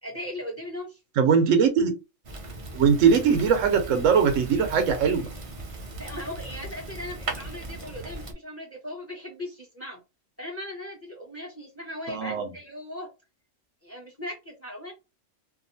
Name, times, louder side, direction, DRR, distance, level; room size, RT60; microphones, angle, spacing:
voice 1, 0.0-1.0 6.0-10.0 10.4-13.1 13.8-14.9, left 1 dB, 10° left, 1.0 m, -38 dB
voice 2, 1.2-1.9 2.7-5.3 12.1-12.5, right 6 dB, 85° right, 1.0 m, -21 dB
Fire, 2.2-8.3, right 2 dB, 50° right, 0.4 m, -38 dB
2.8 x 2.4 x 2.6 m
omnidirectional pair, 1.3 m